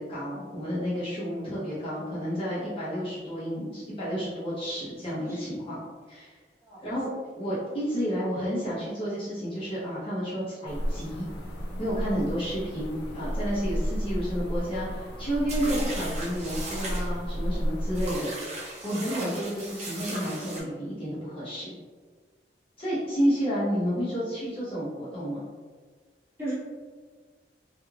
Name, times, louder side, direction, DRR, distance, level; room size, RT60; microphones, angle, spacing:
voice 1, 0.0-5.8 6.1-6.4 6.8-7.1 7.4-11.3 11.8-18.3 18.8-21.7 22.8-25.4, equal, 30° left, -9 dB, 0.7 m, -31 dB
voice 2, 5.3-5.5 6.6-6.8 19.1-19.3 26.4-26.5, right 2 dB, 15° right, -11 dB, 1.2 m, -35 dB
sound 1, 10.7-18.2, equal, 70° left, 0.5 m, -32 dB
sound 2, 15.5-17.1 17.9-20.6, right 1 dB, 40° right, 0.7 m, -37 dB
3.1 x 2.4 x 2.3 m, 1.5 s
head